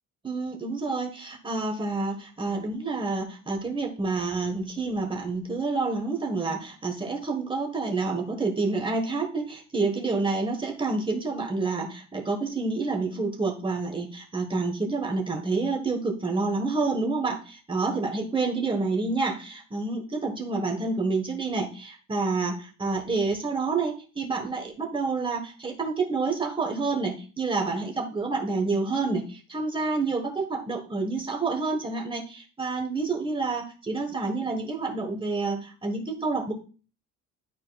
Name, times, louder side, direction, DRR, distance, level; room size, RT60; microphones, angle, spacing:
voice 1, 0.2-36.5, right 3 dB, 15° right, 2 dB, 1.3 m, -28 dB
11.5 x 4.3 x 2.3 m, 0.36 s
cardioid pair, 120°, 30 cm